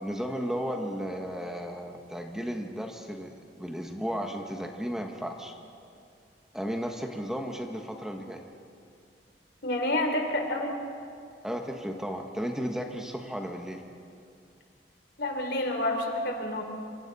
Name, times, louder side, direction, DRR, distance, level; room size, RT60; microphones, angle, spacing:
voice 1, 0.0-5.5 6.5-8.4 11.4-13.8, equal, 5° right, 2 dB, 1.3 m, -34 dB
voice 2, 9.6-10.7 15.2-16.6, left 1 dB, 65° left, 3 dB, 3.4 m, -28 dB
27.0 x 26.0 x 4.1 m, 2.4 s
head